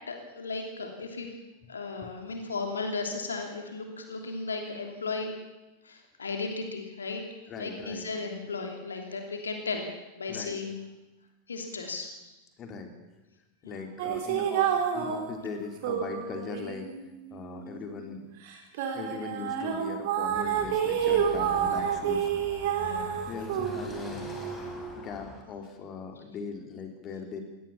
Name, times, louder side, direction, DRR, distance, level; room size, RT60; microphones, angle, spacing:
voice 1, 0.1-1.3 1.7-5.3 5.8-7.2 7.5-9.9 10.2-10.8 11.5-12.3 13.6-13.9 18.8-18.9 22.7-23.3, left 3 dB, 70° left, 4 dB, 3.0 m, -35 dB
voice 2, 7.5-8.1 10.3-10.6 12.6-12.9 13.6-16.9 17.3-18.2 18.9-22.3 23.2-24.3 25.0-27.4, left 5 dB, 30° left, 5 dB, 3.6 m, -39 dB
sound 1, 14.0-18.0 18.5-25.0, right 8 dB, 50° right, 4.2 m, -29 dB
Car passing by / Traffic noise roadway noise, 20.3-25.4, left 2 dB, 15° left, 5.5 m, -43 dB
22.0 x 17.5 x 7.2 m, 1.0 s
figure-of-eight pair, 90°, 0 cm